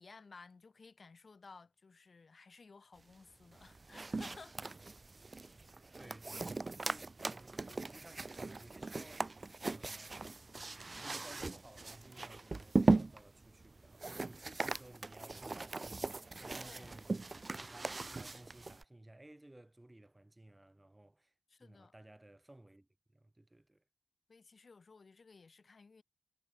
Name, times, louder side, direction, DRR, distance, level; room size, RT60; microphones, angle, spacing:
voice 1, 0.0-4.7 6.0-6.1 16.5-16.9 21.5-21.9 24.3-26.0, left 4 dB, 50° left, 1.4 m, -57 dB
sound 1, 3.5-18.8, right 3 dB, 35° right, 0.4 m, -38 dB
voice 2, 6.0-9.3 9.6-10.3 11.0-21.3 21.6-23.8, right 1 dB, 15° right, 4.6 m, -58 dB
wide cardioid pair, 95°, 0 cm